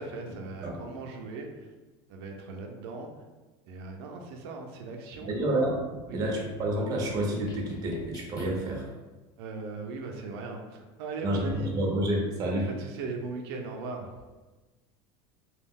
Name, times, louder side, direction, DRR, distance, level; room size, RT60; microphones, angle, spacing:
voice 1, 0.0-1.7 2.1-3.1 3.7-5.3 6.1-6.2 9.4-11.8 12.8-14.1, right 3 dB, 85° right, 2 dB, 0.4 m, -38 dB
voice 2, 5.2-5.8 6.1-8.9 11.2-12.7, right 1 dB, 30° right, -1 dB, 0.5 m, -29 dB
sound 1, 5.3-8.9, left 1 dB, 30° left, 0.3 m, -45 dB
2.3 x 2.1 x 3.5 m, 1.2 s
cardioid pair, 155°, 13 cm